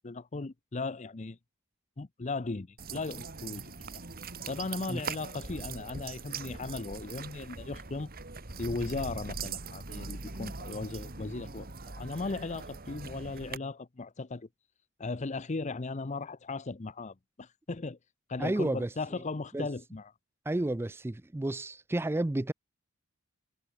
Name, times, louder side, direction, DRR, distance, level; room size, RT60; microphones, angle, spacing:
voice 1, 0.0-1.4 2.0-4.0 4.5-8.1 8.6-14.5 15.0-18.0 18.3-20.1, left 3 dB, 30° left, 0.6 m, -37 dB
sound 1, 2.8-13.6, right 4 dB, 40° right, 2.0 m, -41 dB
voice 2, 18.4-18.9 19.5-19.7 20.5-22.5, right 1 dB, 10° right, 0.3 m, -31 dB
head